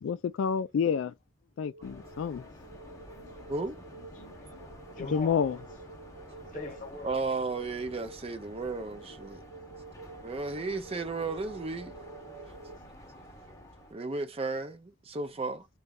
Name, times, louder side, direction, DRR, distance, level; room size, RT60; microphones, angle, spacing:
voice 1, 0.0-1.1 1.6-2.4 5.1-5.6, left 7 dB, 85° left, 0.3 m, -29 dB
sound 1, 1.6-12.8, right 3 dB, 85° right, 0.8 m, -50 dB
sound 2, 1.8-13.9, equal, 15° left, 0.8 m, -50 dB
voice 2, 2.9-3.5 4.1-4.7 4.9-5.5 6.3-7.2, left 2 dB, 40° left, 1.0 m, -43 dB
voice 3, 7.0-9.4 10.2-12.0 13.9-15.7, right 3 dB, 30° right, 0.5 m, -34 dB
4.0 x 2.3 x 3.6 m
head